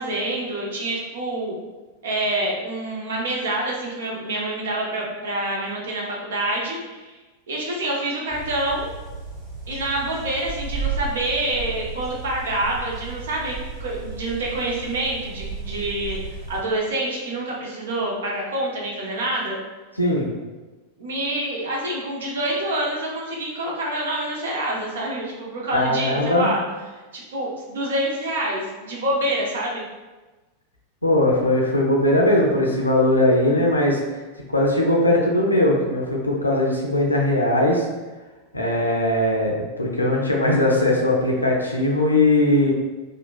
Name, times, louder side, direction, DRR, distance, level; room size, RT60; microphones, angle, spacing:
voice 1, 0.0-1.5 2.0-7.2 7.5-8.9 9.7-13.5 13.8-19.6 21.0-26.6 27.1-29.8, right 1 dB, 60° right, -3 dB, 0.7 m, -27 dB
sound 1, 8.3-16.6, right 4 dB, 20° right, 1.2 m, -33 dB
voice 2, 20.0-20.3 25.7-26.5 31.0-34.2 34.5-37.9 38.5-42.7, left 1 dB, 80° left, -1 dB, 0.5 m, -20 dB
2.9 x 2.1 x 2.4 m, 1.2 s
figure-of-eight pair, 90°, 0 cm